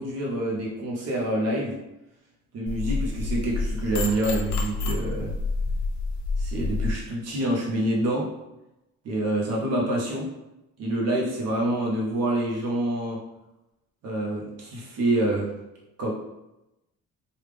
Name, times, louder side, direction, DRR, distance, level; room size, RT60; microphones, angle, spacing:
voice 1, 0.0-1.8 2.5-5.3 6.4-8.3 9.0-10.3 10.8-13.2 14.0-15.5 16.0-16.1, right 1 dB, 55° right, -3 dB, 0.7 m, -27 dB
sound 1, 2.7-6.9, left 3 dB, 65° left, 0.6 m, -28 dB
3.2 x 2.3 x 3.3 m, 0.95 s
cardioid pair, 165°, 31 cm